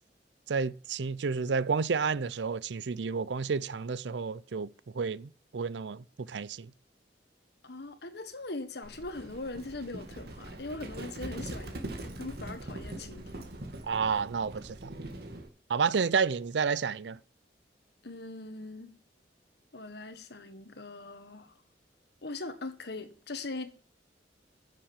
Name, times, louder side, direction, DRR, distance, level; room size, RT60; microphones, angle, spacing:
voice 1, 0.5-4.7 4.9-6.7 13.9-14.9 15.7-17.2, right 5 dB, 80° right, 0.5 m, -30 dB
voice 2, 7.6-13.5 18.0-19.0 19.7-21.6 22.2-23.7, left 2 dB, 65° left, 1.5 m, -41 dB
Livestock farm animals working animals, 8.8-15.5, right 1 dB, 60° right, 2.1 m, -42 dB
10.0 x 7.5 x 7.3 m
head